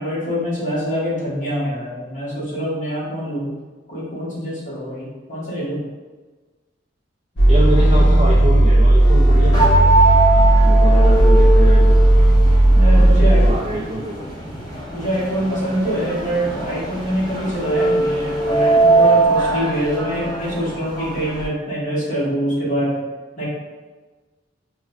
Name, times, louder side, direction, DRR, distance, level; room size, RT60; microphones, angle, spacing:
voice 1, 0.0-3.5 3.9-5.8 10.9-11.1 12.7-13.4 14.9-23.0 23.4-23.5, equal, 40° left, -8 dB, 1.2 m, -24 dB
sound 1, 7.4-13.5, right 1 dB, 75° left, 0.6 m, -13 dB
voice 2, 7.5-10.0 10.6-12.0 13.2-14.3, right 1 dB, 30° right, -6 dB, 0.4 m, -25 dB
sound 2, 9.5-21.5, right 2 dB, 20° left, 0.6 m, -20 dB
4.4 x 2.1 x 2.3 m, 1.3 s
head